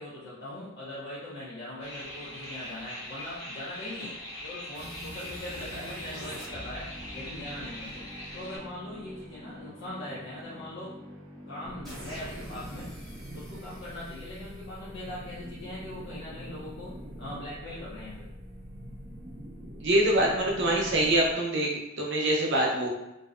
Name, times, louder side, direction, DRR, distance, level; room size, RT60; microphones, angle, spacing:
voice 1, 0.0-8.0 8.3-11.0 11.5-12.9 13.3-18.3 20.6-20.7, left 1 dB, 55° left, -9 dB, 0.6 m, -41 dB
sound 1, 1.8-8.6, left 1 dB, 75° left, 1.0 m, -42 dB
sound 2, 4.7-15.7, equal, ahead, 0.9 m, -45 dB
sound 3, 11.6-21.3, equal, 20° right, 0.3 m, -44 dB
voice 2, 19.8-21.7 22.0-22.9, right 1 dB, 65° right, -2 dB, 0.6 m, -24 dB
2.6 x 2.0 x 2.4 m, 0.92 s
head